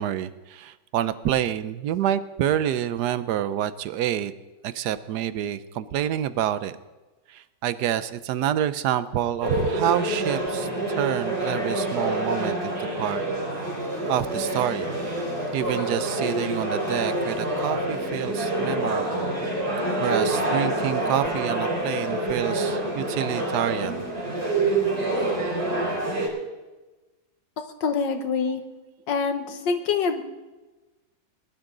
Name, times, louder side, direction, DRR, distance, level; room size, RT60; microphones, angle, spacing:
voice 1, 0.0-4.3 4.6-6.8 7.3-13.2 14.1-15.0 15.5-19.3 20.0-24.0, right 11 dB, 65° right, 14 dB, 1.1 m, -27 dB
sound 1, 9.4-26.3, right 2 dB, 50° right, 4.7 m, -27 dB
voice 2, 27.6-28.6 29.1-30.2, left 5 dB, 65° left, 7 dB, 1.7 m, -25 dB
20.5 x 12.0 x 3.9 m, 1.1 s
omnidirectional pair, 2.2 m